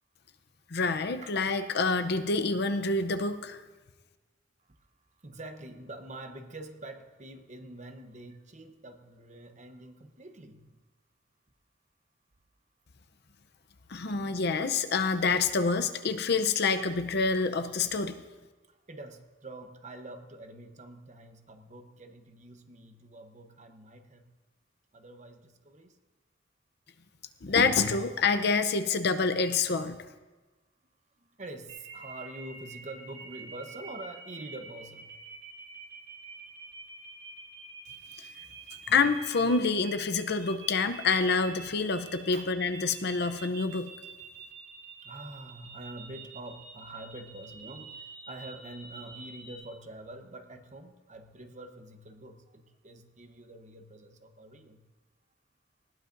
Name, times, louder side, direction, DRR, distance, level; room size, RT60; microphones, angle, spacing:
voice 1, 0.7-3.6 13.9-18.2 27.4-30.0 38.9-43.9, left 4 dB, 60° left, 9 dB, 0.7 m, -27 dB
voice 2, 5.2-10.7 14.0-14.5 15.3-15.8 17.0-17.1 18.7-24.2 24.9-25.9 31.4-35.2 42.3-42.5 45.0-54.9, right 2 dB, 40° right, 6 dB, 1.0 m, -46 dB
sound 1, 31.7-49.6, right 4 dB, 55° right, 5.0 m, -47 dB
19.5 x 15.5 x 2.6 m, 1.2 s
head